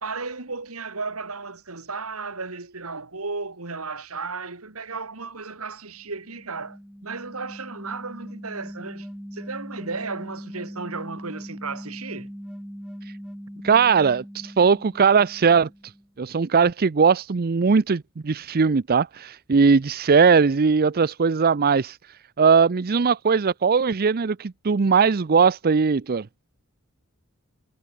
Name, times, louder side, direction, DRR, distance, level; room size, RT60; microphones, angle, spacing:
voice 1, 0.0-12.3, right 4 dB, 75° right, 2.8 m, -34 dB
sound 1, 5.9-16.1, equal, 5° right, 1.1 m, -40 dB
voice 2, 13.6-15.9 16.2-22.0 22.4-26.3, right 5 dB, 45° right, 0.5 m, -19 dB
head